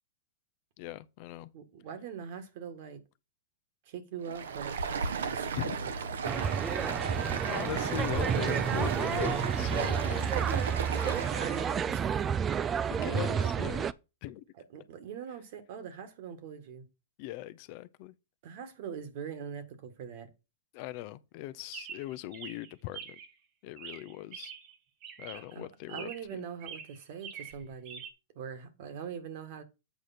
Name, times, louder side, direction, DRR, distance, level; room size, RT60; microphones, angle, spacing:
voice 1, 0.8-1.5 5.5-5.8 7.5-10.4 11.0-11.2 12.9-13.9 14.2-14.4 17.2-18.1 20.7-23.2 23.6-24.5 25.2-26.5, left 15 dB, 50° left, 0.6 m, -40 dB
voice 2, 1.5-3.0 3.9-5.9 7.8-8.1 11.0-13.8 14.5-16.9 18.4-20.3 25.3-28.0 28.4-29.6, right 7 dB, 55° right, 1.8 m, -43 dB
Stream, 4.2-11.8, right 5 dB, 80° right, 1.1 m, -35 dB
sound 1, 6.2-13.9, right 7 dB, 20° right, 0.4 m, -30 dB
Chirp tweet, 21.7-23.3 23.8-24.8 25.0-25.6 25.9-26.4 26.6-28.1, right 7 dB, 40° right, 1.5 m, -45 dB
8.1 x 5.0 x 4.3 m
hypercardioid pair, 125°, 0 cm